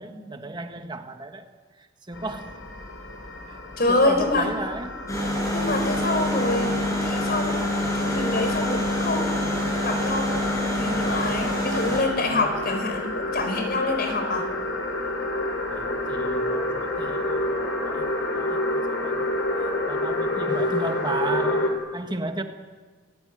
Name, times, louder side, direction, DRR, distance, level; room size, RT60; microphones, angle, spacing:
voice 1, 0.0-1.5 1.8-2.6 3.5-3.6 3.9-5.0 12.3-12.6 15.7-22.4, right 2 dB, 25° right, 6 dB, 1.5 m, -35 dB
sound 1, 2.1-21.7, left 2 dB, 85° left, 6.0 m, -29 dB
voice 2, 3.8-4.5 5.5-9.6 9.8-14.5, left 2 dB, 50° left, 6 dB, 4.6 m, -26 dB
sound 2, 5.1-12.0, left 1 dB, 15° left, 7.4 m, -26 dB
29.0 x 19.0 x 9.5 m, 1.5 s
head